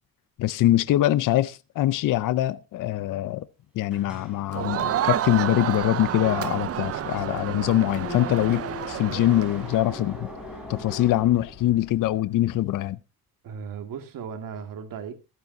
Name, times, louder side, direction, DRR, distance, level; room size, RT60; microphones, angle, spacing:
voice 1, 0.4-3.5 3.7-10.3 10.7-13.0, left 14 dB, 60° left, 0.6 m, -23 dB
sound 1, 3.9-12.0, left 1 dB, ahead, 6.2 m, -42 dB
Crowd, 4.5-9.8, right 11 dB, 45° right, 0.6 m, -30 dB
sound 2, 5.7-12.7, left 6 dB, 40° left, 2.5 m, -46 dB
voice 2, 13.4-15.1, right 7 dB, 65° right, 2.1 m, -36 dB
15.5 x 12.0 x 2.7 m
cardioid pair, 135°, 35 cm